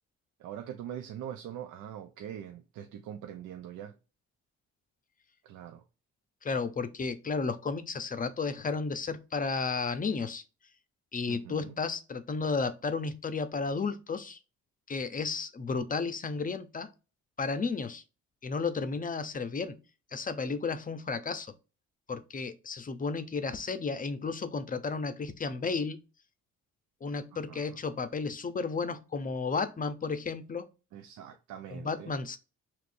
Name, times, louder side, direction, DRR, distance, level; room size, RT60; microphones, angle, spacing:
voice 1, 0.4-3.9 5.4-5.8 11.3-11.8 27.3-27.8 30.9-32.2, right 10 dB, 80° right, 0.6 m, -43 dB
voice 2, 6.4-10.4 11.1-14.4 14.9-16.9 17.4-18.0 18.4-19.8 20.1-21.5 22.1-26.0 27.0-30.7 31.7-32.4, left 4 dB, 30° left, 0.6 m, -33 dB
4.8 x 3.1 x 2.6 m
cardioid pair, 90°, 30 cm